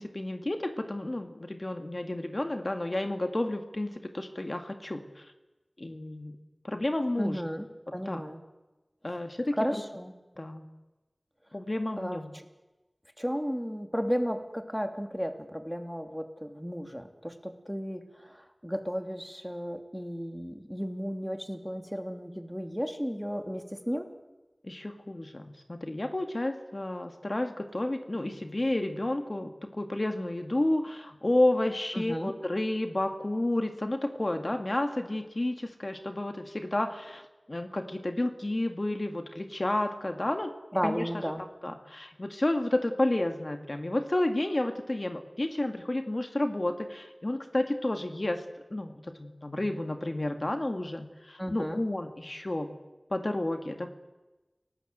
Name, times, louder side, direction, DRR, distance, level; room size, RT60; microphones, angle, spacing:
voice 1, 0.0-5.3 5.8-6.4 6.6-7.4 8.1-8.2 9.0-9.5 10.4-10.7 11.5-12.3 24.6-37.2 37.5-40.5 40.8-41.1 41.6-48.4 48.7-52.7 53.1-53.9, left 1 dB, 50° left, 6 dB, 2.2 m, -31 dB
voice 2, 7.2-7.7 7.9-8.4 9.5-10.1 12.0-12.4 13.2-24.1 31.9-32.3 40.7-41.4 51.4-51.8, equal, ahead, 6 dB, 3.0 m, -34 dB
29.5 x 18.5 x 8.1 m, 1.1 s
wide cardioid pair, 40°, 0 cm